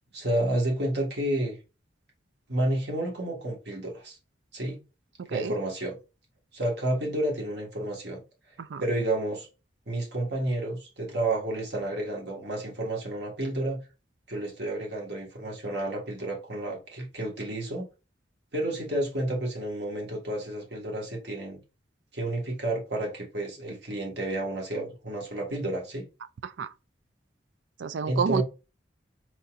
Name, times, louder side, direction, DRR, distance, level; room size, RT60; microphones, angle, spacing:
voice 1, 0.1-1.6 2.5-4.2 4.5-4.8 5.3-6.0 6.5-8.2 8.8-9.5 9.9-13.8 14.3-17.8 18.5-21.6 22.1-26.0 28.1-28.4, right 1 dB, 65° right, 1.7 m, -30 dB
voice 2, 27.8-28.4, right 6 dB, 85° right, 0.4 m, -29 dB
4.5 x 4.1 x 2.5 m
head